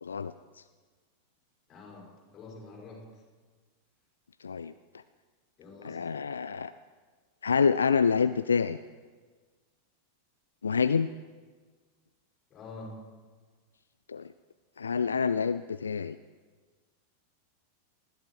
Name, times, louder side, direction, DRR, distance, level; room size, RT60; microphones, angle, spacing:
voice 1, 0.0-0.6 4.4-4.7 5.8-6.7 7.4-8.8 10.6-11.1 14.1-14.3 14.8-16.2, left 6 dB, 70° left, 14 dB, 0.4 m, -27 dB
voice 2, 1.7-3.0 5.6-6.0 12.5-13.0, left 3 dB, 30° left, -3 dB, 6.1 m, -46 dB
20.0 x 14.5 x 4.8 m, 1.5 s
figure-of-eight pair, 90°, 0 cm